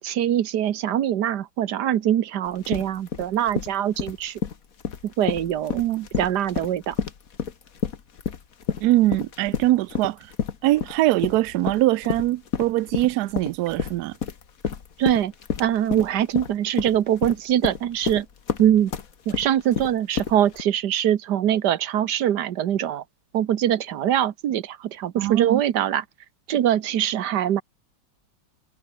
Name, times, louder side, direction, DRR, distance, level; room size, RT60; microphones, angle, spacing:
voice 1, 0.0-4.4 5.0-5.8 6.2-7.0 15.0-15.3 15.6-18.3 18.6-18.9 19.3-23.0 23.3-26.0 26.5-27.6, right 10 dB, 60° right, 1.5 m, -23 dB
sound 1, 2.5-20.6, left 7 dB, 45° left, 1.7 m, -30 dB
voice 2, 5.7-6.1 8.8-10.2 10.6-14.1 25.2-25.6, right 16 dB, 90° right, 0.8 m, -22 dB
omnidirectional pair, 2.3 m